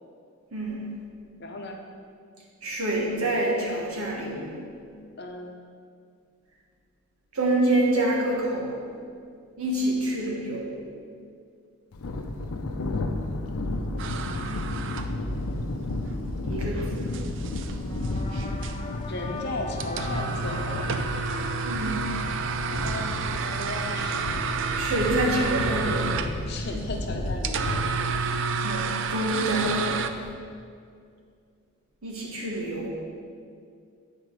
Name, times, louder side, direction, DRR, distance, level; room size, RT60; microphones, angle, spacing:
voice 1, 0.5-1.0 2.6-4.6 7.3-8.8 9.6-10.8 16.4-17.2 21.6-22.2 24.8-26.2 28.6-30.2 32.0-32.9, right 1 dB, 80° right, -2 dB, 1.5 m, -27 dB
voice 2, 1.4-1.8 5.2-5.5 19.1-20.9 22.7-24.2 26.4-28.2, left 2 dB, 50° left, 2 dB, 0.8 m, -36 dB
Thunder, 11.9-30.3, left 2 dB, 85° left, 0.6 m, -33 dB
sound 1, 14.0-30.1, right 5 dB, 60° right, 0.4 m, -31 dB
sound 2, 17.8-24.2, left 2 dB, 25° left, 0.5 m, -41 dB
8.8 x 5.1 x 4.7 m, 2.3 s
head